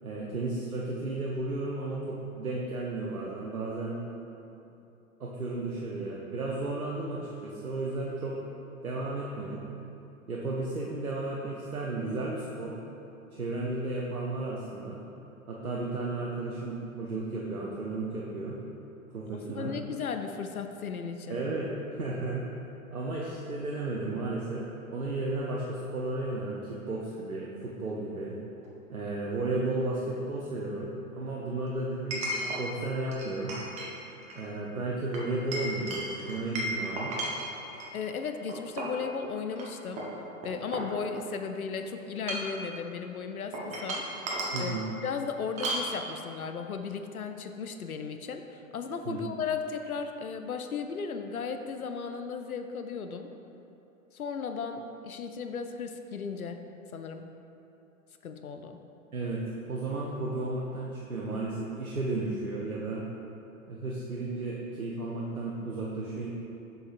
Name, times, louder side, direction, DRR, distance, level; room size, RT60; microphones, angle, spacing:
voice 1, 0.0-4.0 5.2-8.3 8.8-9.7 10.3-12.8 13.3-15.0 15.5-18.6 19.1-19.7 21.3-21.7 22.0-22.5 22.9-24.7 24.9-28.4 28.9-33.5 34.3-37.1 44.5-44.9 49.1-49.2 59.1-63.0 63.7-66.3, right 2 dB, 85° right, -4 dB, 0.7 m, -33 dB
voice 2, 19.3-21.4 37.9-40.1 40.4-44.0 44.6-44.8 45.0-53.3 54.1-56.6 56.9-57.3 58.2-58.8, left 5 dB, 85° left, 6 dB, 0.6 m, -35 dB
Chink clink, 28.6-28.7 32.1-32.6 33.1-33.9 34.2-34.5 35.1-37.9 38.5-39.0 39.5-39.6 40.0-41.4 42.1-42.6 43.5-44.7 45.6-45.9, right 1 dB, 15° right, 0.7 m, -34 dB
7.5 x 5.5 x 2.5 m, 2.9 s
figure-of-eight pair, 105°, 42 cm